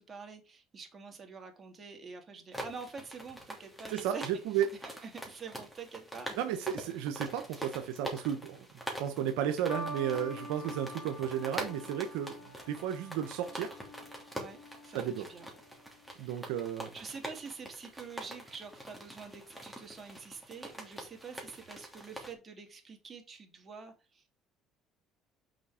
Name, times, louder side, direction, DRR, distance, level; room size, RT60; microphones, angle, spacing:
voice 1, 0.0-4.2 4.5-4.7 5.0-6.4 7.5-7.8 14.3-15.5 16.1-16.5 16.9-24.4, right 5 dB, 35° right, 2.3 m, -47 dB
sound 1, 2.5-22.3, equal, ahead, 3.0 m, -45 dB
voice 2, 3.9-4.7 6.4-8.7 9.0-12.4 12.7-13.7 14.9-15.3 16.2-16.9, right 10 dB, 85° right, 0.9 m, -33 dB
sound 2, 9.7-16.2 17.1-17.5, left 1 dB, 60° left, 2.0 m, -46 dB
6.4 x 5.0 x 4.8 m
supercardioid pair, 80°, 0 cm